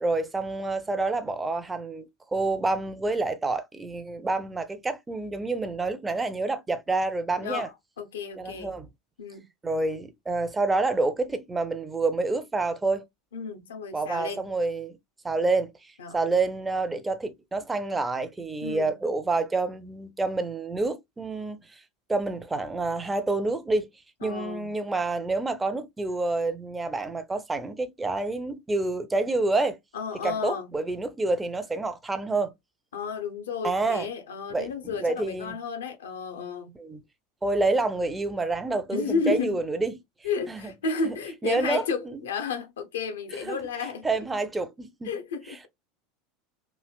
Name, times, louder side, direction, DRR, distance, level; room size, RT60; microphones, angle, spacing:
voice 1, 0.0-7.7 8.4-8.9 9.6-13.0 13.9-15.0 15.2-15.7 16.1-21.7 22.1-23.9 24.2-29.8 30.2-32.5 33.6-34.1 34.5-35.6 36.8-37.0 37.4-40.0 40.5-40.7 41.1-41.2 41.4-42.1 43.5-43.6 44.0-45.1 45.5-45.6, right 3 dB, 15° right, 0.5 m, -28 dB
voice 2, 7.4-8.8 9.2-9.5 13.3-14.5 16.0-16.2 18.6-19.0 24.2-24.7 29.9-30.7 32.9-36.8 38.9-39.6 40.2-44.1 45.0-45.7, left 5 dB, 65° left, 0.7 m, -32 dB
3.2 x 2.7 x 2.3 m
figure-of-eight pair, 80°, 0 cm